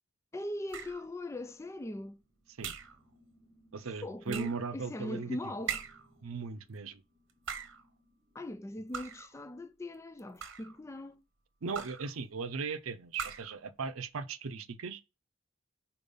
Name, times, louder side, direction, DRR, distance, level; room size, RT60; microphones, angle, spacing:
voice 1, 0.3-2.2 3.8-5.8 8.3-11.2, left 1 dB, 15° left, 0.3 m, -40 dB
sound 1, 0.7-1.1 2.6-3.0 4.3-4.7 5.7-6.1 7.3-7.9 8.9-9.3 10.2-10.8 11.7-12.1 13.1-13.6, right 7 dB, 60° right, 0.9 m, -40 dB
sound 2, 1.6-9.4, equal, 20° right, 1.3 m, -66 dB
voice 2, 3.7-5.4 6.2-7.0 11.6-15.0, right 5 dB, 80° right, 0.6 m, -38 dB
5.4 x 4.4 x 5.5 m
head